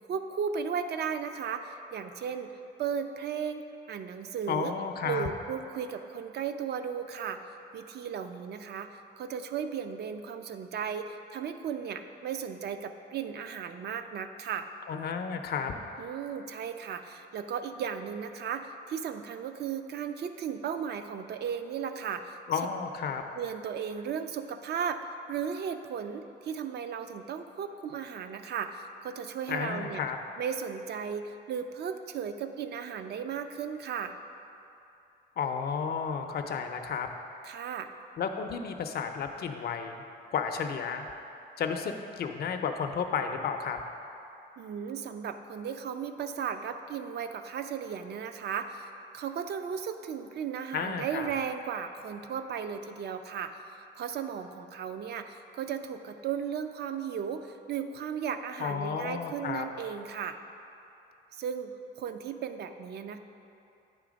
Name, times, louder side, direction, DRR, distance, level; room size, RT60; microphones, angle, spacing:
voice 1, 0.1-2.5 2.8-4.7 5.0-7.4 7.7-14.7 16.0-22.4 23.4-30.0 30.4-34.2 37.4-37.9 44.6-48.8 49.1-53.6 54.0-60.4 61.3-61.7 62.0-63.2, right 7 dB, 55° right, 8 dB, 0.5 m, -35 dB
voice 2, 4.5-5.3 14.9-15.7 22.5-23.2 29.5-30.2 35.4-37.1 38.2-40.0 40.3-41.1 41.6-43.8 50.7-51.3 58.6-59.7, left 6 dB, 55° left, 5 dB, 0.5 m, -32 dB
8.8 x 3.3 x 5.1 m, 2.8 s
cardioid pair, 90°, 20 cm